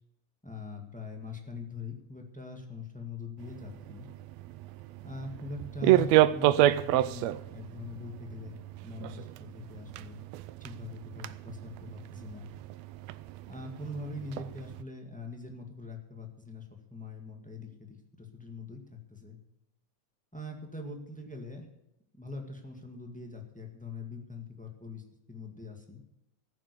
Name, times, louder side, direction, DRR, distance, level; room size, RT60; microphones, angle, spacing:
voice 1, 0.4-4.1 5.0-10.2 10.6-12.5 13.5-19.4 20.3-21.7 22.1-26.0, left 3 dB, 10° left, 2 dB, 0.5 m, -43 dB
sound 1, 3.4-14.8, right 14 dB, 85° right, 1.5 m, -30 dB
15.0 x 9.3 x 6.8 m, 0.85 s
omnidirectional pair, 3.7 m